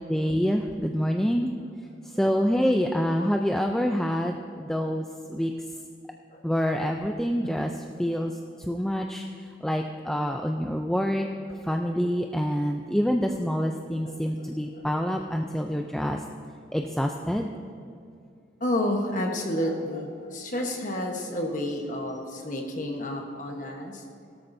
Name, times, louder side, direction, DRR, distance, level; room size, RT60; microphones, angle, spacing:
voice 1, 0.1-1.5 2.2-5.0 5.3-5.5 6.4-7.7 8.0-8.3 8.6-9.2 9.6-11.3 11.7-16.2 16.7-17.5, equal, 5° left, 3 dB, 0.4 m, -26 dB
voice 2, 11.2-11.6 13.7-14.1 14.4-14.8 18.6-24.0, left 1 dB, 45° left, 2 dB, 1.1 m, -31 dB
17.0 x 13.0 x 2.7 m, 2.4 s
head